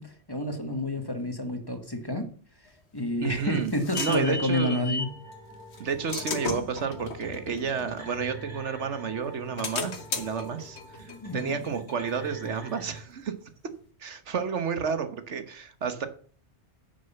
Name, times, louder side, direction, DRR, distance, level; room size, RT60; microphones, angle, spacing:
voice 1, 0.0-2.3 2.9-5.1 11.1-11.6, left 1 dB, 20° left, 6 dB, 1.7 m, -29 dB
sound 1, 3.0-5.2 5.7-8.8 9.2-12.7, left 4 dB, 70° left, 1.6 m, -36 dB
voice 2, 3.2-4.8 5.8-13.3 14.0-16.1, right 6 dB, 80° right, 10 dB, 1.5 m, -31 dB
sound 2, 5.0-13.0, right 1 dB, 60° right, 4.7 m, -46 dB
9.9 x 6.6 x 6.9 m, 0.43 s
omnidirectional pair, 1.2 m